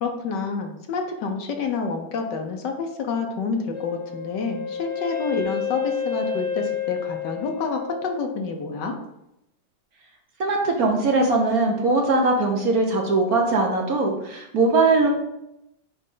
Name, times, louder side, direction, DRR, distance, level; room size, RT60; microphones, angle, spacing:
voice 1, 0.0-9.0, left 4 dB, 65° left, 4 dB, 1.4 m, -28 dB
Wind instrument woodwind instrument, 3.7-8.6, left 7 dB, 20° left, 1.1 m, -30 dB
voice 2, 10.4-15.1, right 3 dB, 60° right, 1 dB, 1.1 m, -20 dB
8.9 x 3.2 x 3.8 m, 0.85 s
omnidirectional pair, 2.1 m